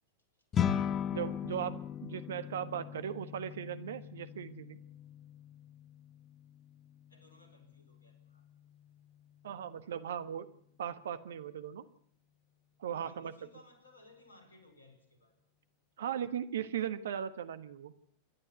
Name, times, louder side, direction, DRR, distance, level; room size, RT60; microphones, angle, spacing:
sound 1, 0.5-10.0, left 8 dB, 25° left, 1.1 m, -39 dB
voice 1, 1.1-4.8 9.4-10.5 10.8-11.8 12.8-13.3 16.0-17.9, right 9 dB, 60° right, 13 dB, 1.3 m, -38 dB
voice 2, 7.1-8.5 12.8-15.4, left 2 dB, 75° left, 8 dB, 4.4 m, -60 dB
27.0 x 12.0 x 8.3 m, 0.62 s
figure-of-eight pair, 90°, 0 cm